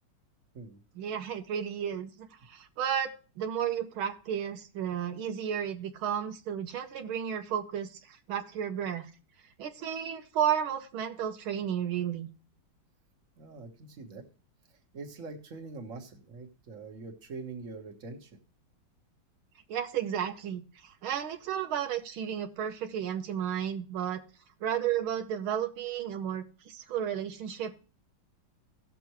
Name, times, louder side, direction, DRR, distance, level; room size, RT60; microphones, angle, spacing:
voice 1, 1.0-3.1 3.4-9.1 9.6-12.3 19.7-24.2 24.6-27.8, right 9 dB, 85° right, 6 dB, 1.7 m, -33 dB
voice 2, 13.4-14.3 14.7-18.4, right 3 dB, 40° right, 2 dB, 1.7 m, -44 dB
17.0 x 6.9 x 3.0 m, 0.37 s
omnidirectional pair, 2.2 m